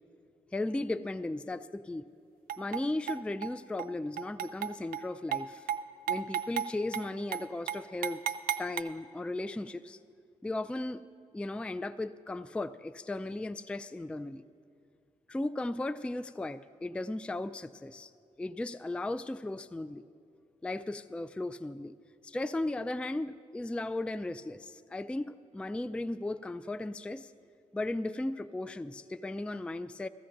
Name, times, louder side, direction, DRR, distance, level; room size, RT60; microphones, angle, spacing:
voice 1, 0.5-2.1 2.6-5.7 6.1-8.2 8.6-10.0 10.4-11.0 11.3-14.4 15.3-18.1 18.4-20.1 20.6-21.9 22.2-27.3 27.7-30.1, left 2 dB, 5° left, 14 dB, 0.3 m, -36 dB
sound 1, 2.5-2.8 3.1-3.5 3.8-3.9 4.2-5.0 5.3-5.4 5.7-5.8 6.1-6.7 6.9-7.0 7.3-7.4 7.7-8.8, right 9 dB, 85° right, 0.4 m, -33 dB
16.5 x 14.0 x 2.6 m, 2.4 s
supercardioid pair, 45°, 15 cm